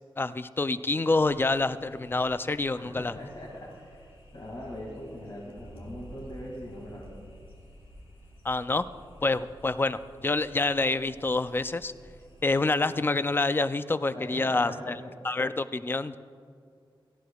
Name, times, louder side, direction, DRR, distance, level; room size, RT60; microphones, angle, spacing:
voice 1, 0.2-3.1 8.4-8.8 9.2-11.9 12.4-15.0 15.2-16.2, left 3 dB, 25° left, 13 dB, 0.4 m, -27 dB
sound 1, 1.1-12.6, equal, 80° left, 2.1 m, -55 dB
voice 2, 2.7-7.1 14.1-15.1, left 1 dB, 60° left, -4 dB, 2.3 m, -41 dB
sound 2, 5.6-11.6, right 1 dB, 30° right, 1.2 m, -51 dB
17.5 x 14.0 x 2.3 m, 2.2 s
wide cardioid pair, 125°, 9 cm